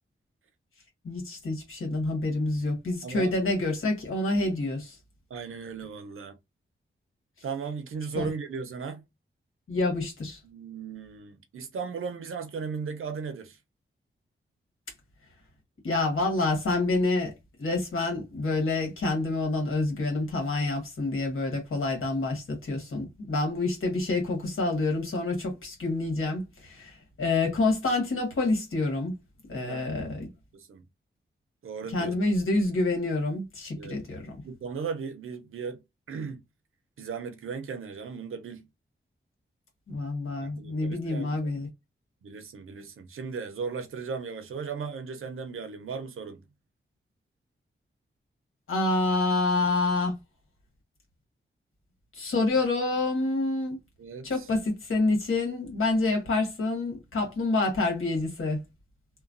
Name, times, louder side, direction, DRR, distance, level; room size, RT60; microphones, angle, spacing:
voice 1, 1.0-5.0 8.1-8.3 9.7-10.4 15.8-17.3 17.6-29.1 29.5-30.3 31.9-34.4 39.9-41.7 48.7-50.1 52.1-53.8 54.2-58.6, left 2 dB, 80° left, 1.5 m, -27 dB
voice 2, 3.0-3.4 5.3-6.4 7.4-9.0 10.4-13.6 29.5-29.9 30.5-30.8 31.6-32.1 33.8-34.0 34.4-35.8 36.1-36.4 37.0-38.7 40.4-41.6 42.2-46.4 54.0-54.5, right 5 dB, 80° right, 0.6 m, -36 dB
3.0 x 2.1 x 2.5 m
wide cardioid pair, 145°, 21 cm